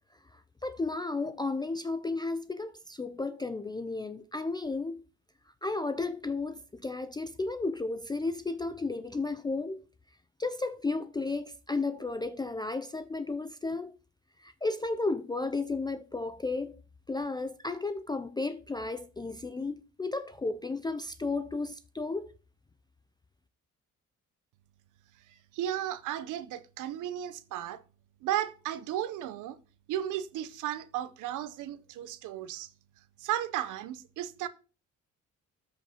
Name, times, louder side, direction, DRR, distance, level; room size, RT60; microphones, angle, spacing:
voice 1, 0.6-5.0 5.6-9.8 10.4-13.9 14.4-16.8 17.1-22.3, left 3 dB, 15° left, 0.3 m, -33 dB
voice 2, 25.5-27.8 28.2-29.6 29.9-32.7 33.2-34.5, right 12 dB, 85° right, 0.7 m, -34 dB
13.0 x 5.3 x 2.8 m
cardioid pair, 90°, 30 cm